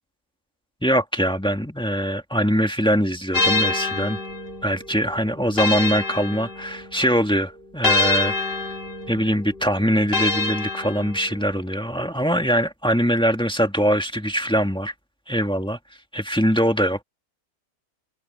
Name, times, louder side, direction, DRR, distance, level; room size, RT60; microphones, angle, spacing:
voice 1, 0.8-4.2 4.6-8.3 9.1-14.9 15.3-15.8 16.1-17.0, equal, 5° left, 1.8 m, -22 dB
sound 1, 3.3-7.1 7.8-11.5, left 3 dB, 40° left, 2.4 m, -26 dB
omnidirectional pair, 1.5 m